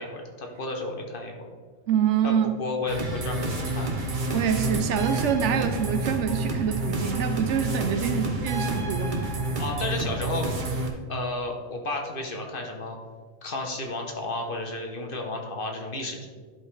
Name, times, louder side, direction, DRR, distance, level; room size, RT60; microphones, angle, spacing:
voice 1, 0.0-1.5 2.2-2.3 2.6-3.9 9.6-10.8 11.1-13.0 13.4-16.3, left 2 dB, 45° left, 2 dB, 1.0 m, -32 dB
voice 2, 1.9-2.5 4.3-9.3, right 8 dB, 70° right, 8 dB, 0.8 m, -26 dB
sound 1, 2.9-10.9, right 2 dB, 40° right, 1.0 m, -29 dB
11.0 x 5.3 x 3.2 m, 1.5 s
omnidirectional pair, 1.4 m